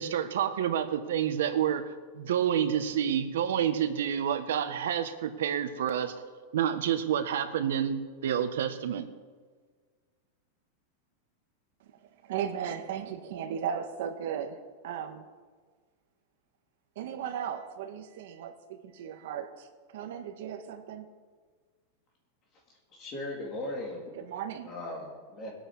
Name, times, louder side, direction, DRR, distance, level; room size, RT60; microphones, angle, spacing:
voice 1, 0.0-1.9 2.1-6.1 6.5-9.1, right 9 dB, 90° right, 8 dB, 1.4 m, -28 dB
voice 2, 12.2-15.3 16.9-21.1 24.2-24.7, right 8 dB, 55° right, 6 dB, 1.5 m, -36 dB
voice 3, 22.9-24.1 24.6-25.5, left 1 dB, 25° left, -1 dB, 3.4 m, -38 dB
20.5 x 9.0 x 6.4 m, 1.5 s
supercardioid pair, 180°, 0 cm